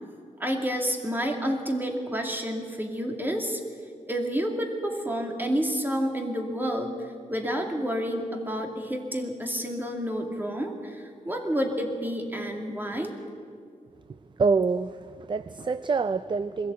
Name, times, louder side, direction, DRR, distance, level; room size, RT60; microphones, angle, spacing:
voice 1, 0.4-3.6 4.1-13.1, equal, 15° right, 2 dB, 2.4 m, -29 dB
voice 2, 14.4-16.7, right 4 dB, 35° right, 14 dB, 0.4 m, -26 dB
21.0 x 16.0 x 8.3 m, 2.2 s
wide cardioid pair, 110°, 14 cm